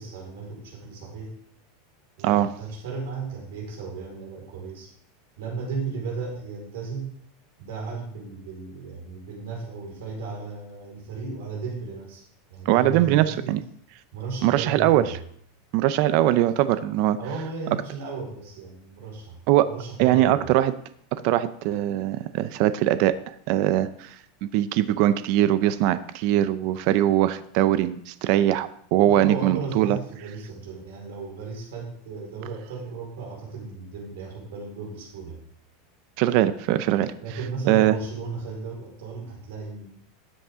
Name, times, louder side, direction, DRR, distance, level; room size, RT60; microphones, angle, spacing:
voice 1, 0.0-1.4 2.2-4.9 5.4-7.1 7.6-12.2 12.5-13.6 14.1-15.2 17.2-19.4 19.7-20.4 29.0-35.4 37.2-39.9, right 4 dB, 80° right, -1 dB, 4.6 m, -35 dB
voice 2, 12.7-13.6 14.4-15.0 15.7-17.2 19.5-19.7 20.0-20.7 21.2-23.2 23.5-24.1 24.4-30.0 36.2-37.1 37.7-37.9, right 13 dB, 45° right, 14 dB, 0.6 m, -21 dB
13.0 x 8.3 x 3.7 m, 0.66 s
supercardioid pair, 165°, 0 cm